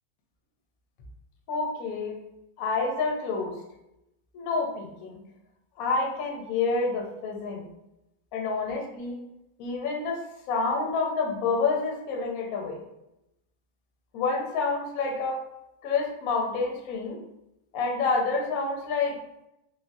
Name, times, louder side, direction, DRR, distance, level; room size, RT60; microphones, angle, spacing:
voice 1, 1.5-2.2 2.6-3.6 4.3-5.2 5.8-7.7 8.3-9.2 9.6-12.8 14.1-15.4 15.8-17.2 17.7-19.2, left 4 dB, 70° left, 0 dB, 0.8 m, -28 dB
3.7 x 2.0 x 2.5 m, 0.87 s
omnidirectional pair, 2.2 m